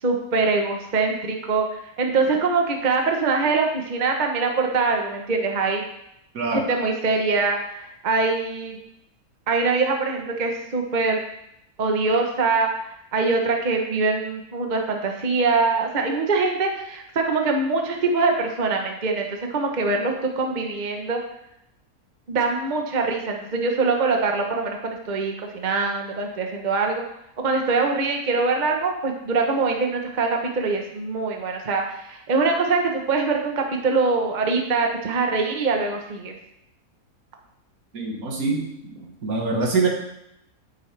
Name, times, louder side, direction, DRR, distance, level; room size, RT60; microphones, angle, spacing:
voice 1, 0.0-5.8 6.5-8.8 9.5-11.2 11.8-21.2 22.3-27.0 27.4-36.4, right 4 dB, 35° right, 2 dB, 1.1 m, -23 dB
voice 2, 6.3-6.7 37.9-39.9, right 3 dB, 70° right, 0 dB, 2.0 m, -25 dB
9.7 x 9.0 x 3.4 m, 0.80 s
omnidirectional pair, 1.6 m